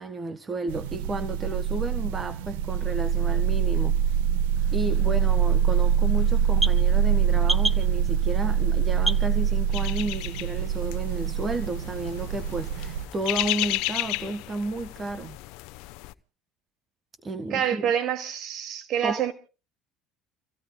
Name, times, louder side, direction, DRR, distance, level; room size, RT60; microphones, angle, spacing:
voice 1, 0.0-4.2 4.7-15.4 17.2-17.9 19.0-19.3, right 2 dB, 30° right, 1.5 m, -32 dB
sound 1, 0.7-13.0, right 8 dB, 90° right, 1.1 m, -24 dB
sound 2, 4.5-10.1, right 1 dB, 5° right, 1.2 m, -35 dB
sound 3, 9.7-16.1, left 20 dB, 75° left, 0.8 m, -34 dB
voice 2, 17.5-19.3, right 9 dB, 60° right, 2.2 m, -27 dB
30.0 x 17.0 x 2.2 m
supercardioid pair, 90°, 0 cm